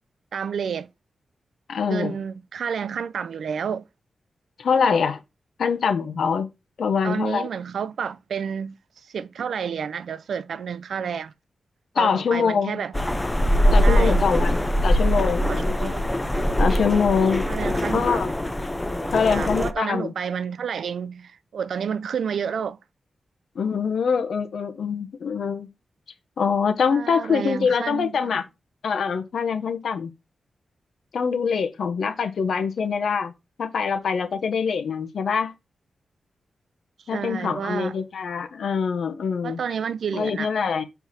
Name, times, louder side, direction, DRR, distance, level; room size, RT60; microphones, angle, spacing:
voice 1, 0.3-0.9 1.9-3.8 7.0-8.8 9.1-11.3 12.0-12.9 13.8-14.2 15.5-16.1 17.5-18.3 18.9-22.8 26.9-28.3 37.1-38.0 39.4-40.5, right 7 dB, 80° right, 0.4 m, -30 dB
voice 2, 1.7-2.2 4.6-5.2 5.6-6.5 6.8-7.5 11.9-12.8 13.7-16.0 16.6-17.6 17.9-18.3 19.1-20.1 23.5-25.7 26.4-28.4 28.8-30.1 31.1-33.3 33.6-35.5 37.1-39.6 40.1-40.8, left 6 dB, 70° left, 1.0 m, -24 dB
sound 1, 12.9-19.7, equal, 10° left, 0.5 m, -22 dB
6.8 x 4.6 x 4.2 m
wide cardioid pair, 175°, 0 cm